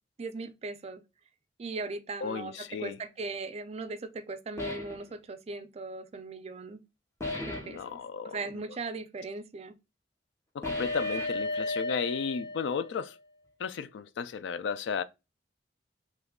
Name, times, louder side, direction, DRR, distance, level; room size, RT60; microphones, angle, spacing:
voice 1, 0.2-1.0 1.6-6.8 7.4-9.7, right 3 dB, 35° right, 0.4 m, -39 dB
voice 2, 2.2-3.0 7.6-8.4 10.5-13.1 13.6-15.0, left 6 dB, 85° left, 0.3 m, -34 dB
sound 1, 4.6-5.0 7.2-7.8 10.6-13.1, left 2 dB, 15° left, 0.8 m, -34 dB
3.0 x 2.3 x 3.5 m
head